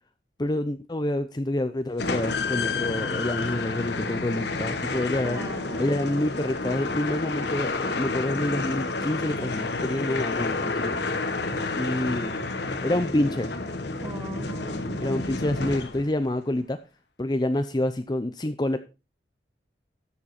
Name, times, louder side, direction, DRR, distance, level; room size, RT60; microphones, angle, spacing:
voice 1, 0.4-5.4 5.8-11.0 11.7-12.4 12.8-13.5 15.0-16.8 17.2-18.8, left 1 dB, 20° left, 9 dB, 0.6 m, -27 dB
sound 1, 2.0-16.3, left 3 dB, 65° left, 1.3 m, -30 dB
voice 2, 5.2-6.0 14.0-15.0, right 1 dB, 20° right, 5 dB, 2.0 m, -38 dB
13.5 x 7.5 x 4.2 m, 0.30 s
head